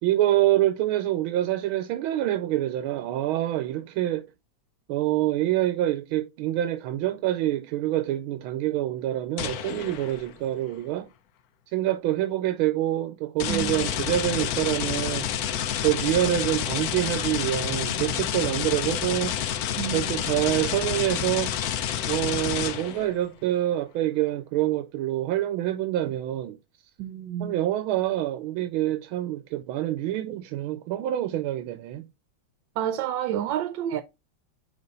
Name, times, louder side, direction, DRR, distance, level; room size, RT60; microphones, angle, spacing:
voice 1, 0.0-4.3 4.9-11.1 11.7-19.4 19.9-21.5 22.1-26.6 27.4-32.1, right 13 dB, 90° right, 1.4 m, -26 dB
sound 1, 9.4-10.3 13.4-23.1, left 9 dB, 70° left, 0.9 m, -29 dB
voice 2, 13.5-13.9 19.8-20.2 27.0-27.6 32.8-34.0, right 10 dB, 75° right, 1.3 m, -30 dB
5.3 x 4.1 x 5.3 m
omnidirectional pair, 2.2 m